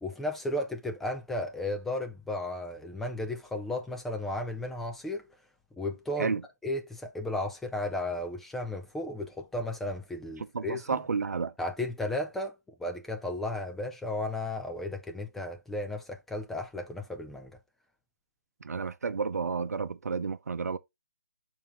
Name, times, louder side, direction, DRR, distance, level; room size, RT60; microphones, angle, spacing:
voice 1, 0.0-5.3 5.8-6.3 6.6-11.0 11.6-12.5 12.8-17.5, left 1 dB, 5° left, 0.3 m, -34 dB
voice 2, 10.5-11.5 18.6-20.8, right 5 dB, 65° right, 0.7 m, -31 dB
6.8 x 4.3 x 3.5 m
figure-of-eight pair, 150°, 9 cm